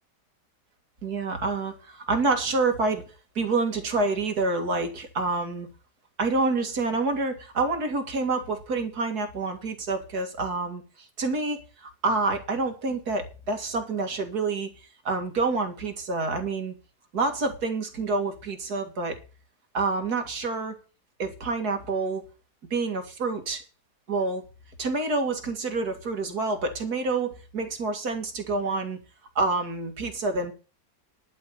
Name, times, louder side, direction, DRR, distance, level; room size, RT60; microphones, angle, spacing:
voice 1, 1.0-3.0 3.4-5.7 6.2-14.7 15.0-16.7 17.1-19.2 19.7-20.8 21.2-22.2 22.7-23.6 24.1-24.4 24.8-29.0 29.4-30.5, right 3 dB, 60° right, 2.7 m, -27 dB
11.0 x 7.5 x 6.6 m
omnidirectional pair, 1.9 m